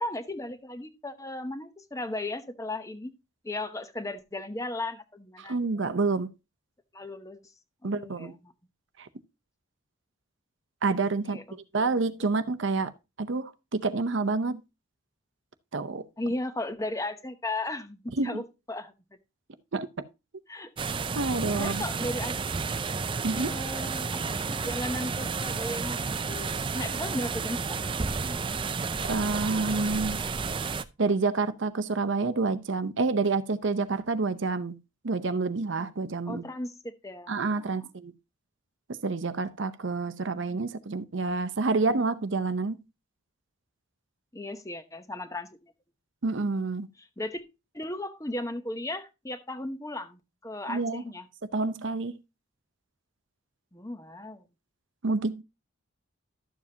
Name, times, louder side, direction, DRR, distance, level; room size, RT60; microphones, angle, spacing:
voice 1, 0.0-3.1 3.4-5.6 6.9-7.4 7.8-8.5 11.3-11.9 16.2-18.4 18.7-18.9 20.5-20.9 21.6-22.5 23.3-27.8 28.2-28.5 36.3-37.9 44.3-45.7 47.0-47.4 47.7-51.3 53.7-54.4, left 1 dB, 15° left, 0.8 m, -36 dB
voice 2, 5.5-6.3 7.8-8.3 9.0-9.1 10.8-11.4 11.7-12.9 13.2-14.6 15.7-16.1 18.2-18.4 19.7-19.9 21.2-21.8 23.2-23.5 29.0-30.2 31.0-34.8 35.0-36.5 37.3-38.1 38.9-42.8 46.2-46.9 50.7-51.0 51.5-52.2 55.0-55.4, right 3 dB, 60° right, 0.6 m, -28 dB
sound 1, 20.8-30.8, right 4 dB, 25° right, 0.4 m, -31 dB
12.0 x 7.2 x 2.8 m
head